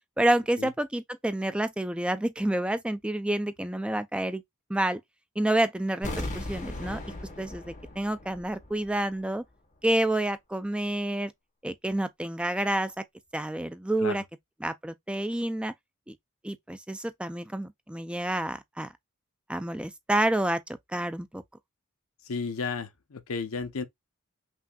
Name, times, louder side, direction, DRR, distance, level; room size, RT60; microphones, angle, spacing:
voice 1, 0.2-4.4 4.7-5.0 5.4-7.0 7.4-9.4 9.8-11.3 11.6-12.9 13.3-14.2 14.6-15.7 16.1-16.2 16.4-18.9 19.5-20.6 20.9-21.4, right 1 dB, 5° right, 0.3 m, -28 dB
sound 1, 6.0-8.9 9.2-9.3, left 1 dB, 35° left, 1.0 m, -37 dB
voice 2, 22.2-23.8, left 4 dB, 70° left, 0.7 m, -33 dB
5.8 x 2.5 x 2.3 m
head